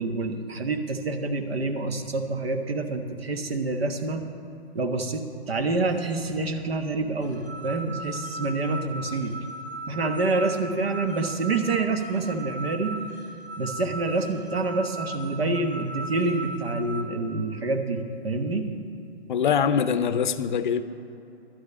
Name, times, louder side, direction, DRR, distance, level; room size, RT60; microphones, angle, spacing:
voice 1, 0.0-4.2 4.7-9.4 9.9-13.0 13.6-18.7, right 3 dB, 70° right, 5 dB, 1.3 m, -27 dB
sound 1, 7.2-17.0, right 2 dB, 90° right, 3.3 m, -37 dB
voice 2, 19.3-20.8, left 7 dB, 50° left, 13 dB, 0.6 m, -23 dB
11.5 x 6.5 x 8.4 m, 2.8 s
figure-of-eight pair, 125°, 32 cm